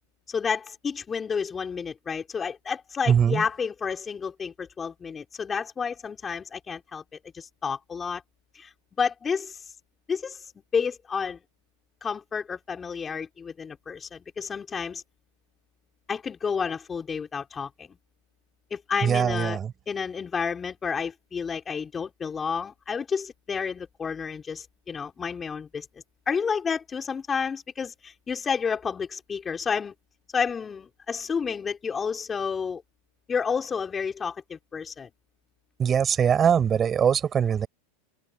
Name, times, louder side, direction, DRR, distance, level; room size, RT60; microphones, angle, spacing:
voice 1, 0.3-7.0 7.3-8.2 8.5-8.7 9.0-9.6 10.1-11.4 12.0-15.0 16.1-18.0 18.7-19.6 19.9-25.9 26.3-29.9 30.3-32.8 33.3-35.1, left 6 dB, 20° left, 4.2 m, -30 dB
voice 2, 3.1-3.4 19.0-19.7 35.8-37.7, right 8 dB, 25° right, 6.7 m, -22 dB
open air
hypercardioid pair, 110°, 0 cm